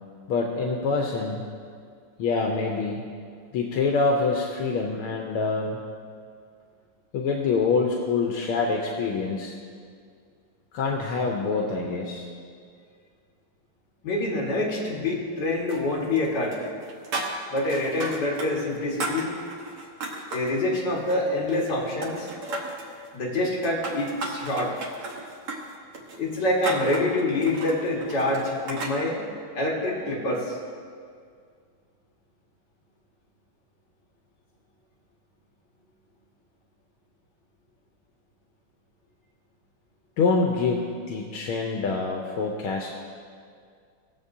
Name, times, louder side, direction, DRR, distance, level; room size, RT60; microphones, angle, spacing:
voice 1, 0.3-1.5 2.2-3.1 3.5-5.8 7.1-9.5 10.7-12.3 40.2-42.9, left 4 dB, 80° left, 1 dB, 1.6 m, -26 dB
voice 2, 14.0-16.6 17.5-19.3 20.3-22.3 23.1-24.7 26.2-29.2 29.5-30.6, left 2 dB, 50° left, -4 dB, 2.2 m, -26 dB
sound 1, 15.7-16.3 16.5-18.5 18.7-20.5 21.0-21.7 22.0-22.9 23.4-29.0, right 2 dB, 85° right, 2.2 m, -35 dB
19.5 x 7.3 x 2.7 m, 2.2 s
omnidirectional pair, 2.4 m